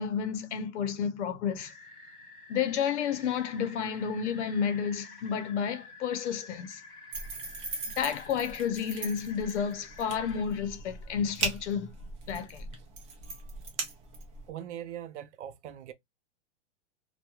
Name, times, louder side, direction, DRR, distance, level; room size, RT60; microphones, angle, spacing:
voice 1, 0.0-1.7 2.5-6.8 8.0-11.9 12.3-12.7, left 7 dB, 80° left, 0.7 m, -31 dB
sound 1, 1.6-10.4, left 3 dB, 25° left, 1.2 m, -50 dB
sound 2, 7.1-14.5, right 4 dB, 25° right, 0.5 m, -39 dB
voice 2, 14.5-15.9, right 10 dB, 80° right, 0.5 m, -41 dB
2.3 x 2.2 x 2.8 m
supercardioid pair, 165°, 35 cm